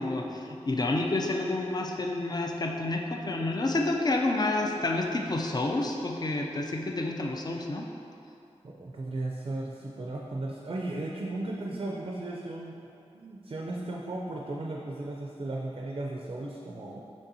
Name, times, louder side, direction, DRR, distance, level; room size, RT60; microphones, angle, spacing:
voice 1, 0.0-7.9, left 2 dB, 35° left, 2 dB, 0.4 m, -29 dB
voice 2, 8.6-12.8 13.1-17.0, right 2 dB, 50° right, -2 dB, 0.4 m, -35 dB
5.3 x 3.4 x 2.7 m, 2.6 s
wide cardioid pair, 65°, 12 cm